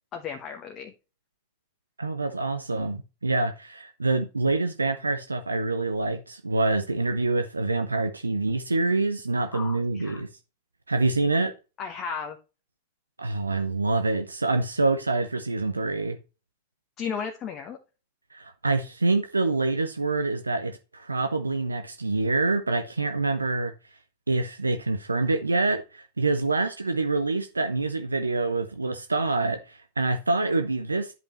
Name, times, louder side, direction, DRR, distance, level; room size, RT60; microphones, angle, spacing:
voice 1, 0.1-0.9 9.5-10.2 11.8-12.4 17.0-17.8, left 6 dB, 30° left, 1.1 m, -34 dB
voice 2, 2.0-10.3 10.9-11.5 13.2-16.2 18.3-23.7 24.3-31.1, right 3 dB, 80° right, 0.7 m, -26 dB
11.0 x 5.2 x 3.1 m
figure-of-eight pair, 90°, 0 cm